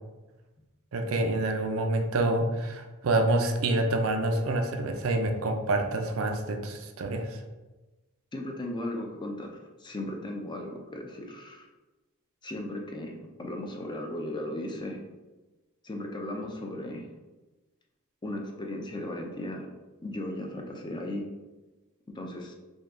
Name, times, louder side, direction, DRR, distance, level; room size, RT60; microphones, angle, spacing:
voice 1, 0.9-7.4, right 2 dB, 65° right, 5 dB, 0.5 m, -27 dB
voice 2, 8.3-11.7 12.4-15.0 15.8-17.1 18.2-19.7 20.0-21.2 22.2-22.5, left 1 dB, 20° left, 1 dB, 0.5 m, -36 dB
5.3 x 2.3 x 3.6 m, 1.1 s
head